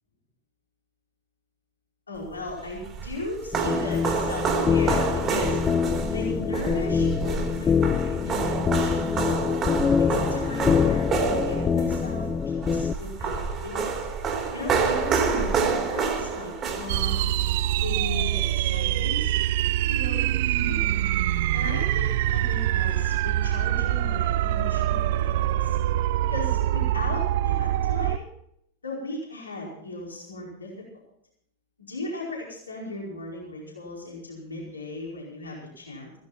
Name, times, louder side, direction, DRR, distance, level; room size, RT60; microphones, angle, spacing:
voice 1, 2.1-5.6 6.1-9.3 10.0-13.8 14.5-17.2 17.8-19.3 19.8-20.9 21.5-25.8 26.3-28.3 28.8-30.7 31.9-36.1, left 2 dB, 75° left, -3 dB, 4.8 m, -37 dB
sound 1, 2.5-17.5, right 5 dB, 25° right, 3.1 m, -28 dB
sound 2, 3.5-12.9, left 6 dB, 20° left, 0.5 m, -25 dB
sound 3, 16.9-28.2, right 12 dB, 50° right, 0.4 m, -24 dB
16.0 x 15.5 x 4.4 m, 0.72 s
figure-of-eight pair, 90°, 0 cm